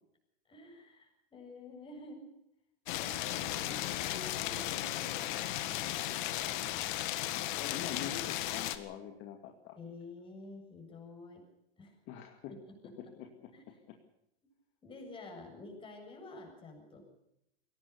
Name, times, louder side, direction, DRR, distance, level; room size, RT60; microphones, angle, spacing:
voice 1, 0.5-2.3 2.9-6.9 9.8-11.4 11.8-11.9 12.5-13.1 13.5-13.6 14.8-17.1, left 2 dB, 15° left, 2 dB, 7.3 m, -50 dB
sound 1, 2.9-8.8, left 14 dB, 55° left, 1.9 m, -35 dB
voice 2, 7.6-9.8 12.1-12.5 13.0-13.1 13.4-13.5 13.9-14.0, left 9 dB, 40° left, 4 dB, 2.3 m, -44 dB
22.0 x 18.5 x 7.0 m, 0.80 s
supercardioid pair, 140°, 30 cm